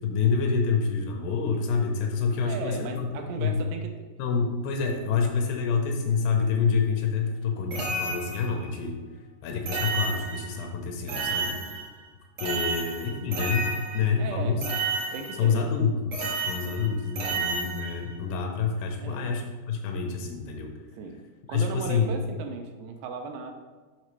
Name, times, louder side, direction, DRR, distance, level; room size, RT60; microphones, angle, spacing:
voice 1, 0.0-3.1 3.4-3.6 4.2-9.0 9.4-11.6 12.4-14.6 15.4-20.7 21.5-22.1, left 5 dB, 80° left, 2 dB, 2.5 m, -27 dB
voice 2, 2.4-4.1 11.5-11.8 12.6-12.7 14.2-14.7 15.1-15.7 16.2-16.3 19.0-19.3 20.9-21.2 21.5-23.5, right 4 dB, 85° right, 5 dB, 2.5 m, -37 dB
sound 1, 7.7-8.7 9.7-10.7 11.1-12.1 12.4-14.3 14.6-15.6 16.1-18.2, right 3 dB, 65° right, 1.6 m, -31 dB
7.3 x 5.2 x 3.1 m, 1.3 s
omnidirectional pair, 4.9 m